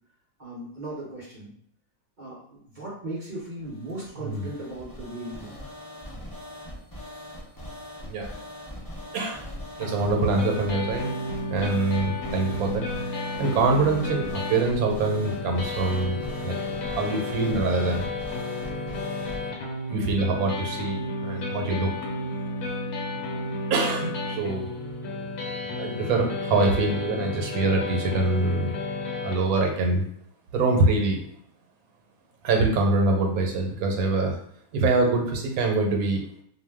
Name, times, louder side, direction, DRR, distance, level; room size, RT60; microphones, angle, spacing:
voice 1, 0.4-1.5 2.2-5.7, right 1 dB, 50° right, -6 dB, 0.6 m, -37 dB
sound 1, 3.6-19.5, left 1 dB, 30° left, 0.4 m, -41 dB
sound 2, 9.8-29.4, left 2 dB, 85° left, 1.2 m, -32 dB
voice 2, 9.8-11.1 11.5-13.0 13.4-16.6 16.9-18.0 19.9-21.9 23.7-24.7 25.8-28.7 29.2-30.0 30.5-31.2 32.4-34.4 34.7-36.2, right 3 dB, 85° right, 2 dB, 1.1 m, -24 dB
2.5 x 2.1 x 3.4 m, 0.70 s
omnidirectional pair, 1.5 m